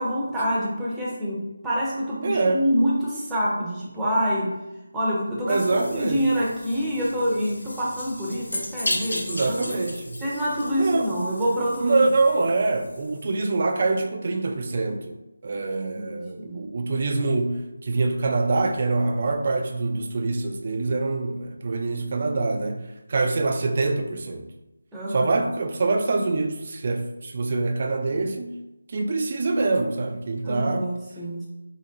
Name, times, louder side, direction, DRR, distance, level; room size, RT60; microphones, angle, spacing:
voice 1, 0.0-4.5 4.9-9.8 10.2-12.1 15.9-16.6 24.9-25.5 30.4-31.5, equal, 5° right, -8 dB, 0.7 m, -26 dB
voice 2, 2.2-2.6 5.5-6.2 9.3-10.2 10.8-11.1 11.8-15.2 15.4-22.8 23.1-24.5 25.1-28.6 28.9-30.9, right 3 dB, 40° right, 5 dB, 0.4 m, -25 dB
sound 1, 5.5-13.6, left 1 dB, 75° left, 0.8 m, -35 dB
3.8 x 2.8 x 2.8 m, 0.96 s
figure-of-eight pair, 165°, 0 cm